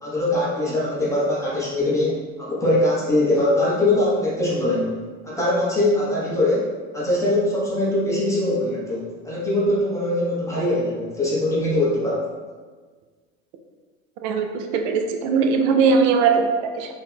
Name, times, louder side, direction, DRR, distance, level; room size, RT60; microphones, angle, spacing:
voice 1, 0.0-5.0 5.2-6.6 6.9-12.3, left 1 dB, 10° left, -8 dB, 1.1 m, -22 dB
voice 2, 14.2-16.9, right 5 dB, 50° right, 5 dB, 0.6 m, -20 dB
4.3 x 2.8 x 2.2 m, 1.5 s
hypercardioid pair, 80°, 38 cm